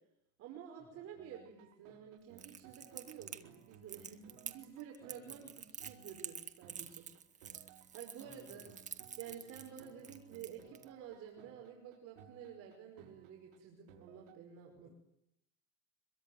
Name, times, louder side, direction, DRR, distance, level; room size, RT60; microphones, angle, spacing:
voice 1, 0.4-7.0 7.3-7.6 7.9-8.7 9.2-14.9, right 8 dB, 40° right, 1 dB, 5.5 m, -51 dB
sound 1, 1.1-14.4, right 10 dB, 75° right, 5.7 m, -61 dB
Crackle, 2.4-10.8, right 7 dB, 20° right, 1.9 m, -48 dB
voice 2, 8.2-8.7 14.8-14.9, left 2 dB, 25° left, 5 dB, 7.3 m, -62 dB
25.0 x 23.0 x 9.5 m, 0.80 s
cardioid pair, 155°, 37 cm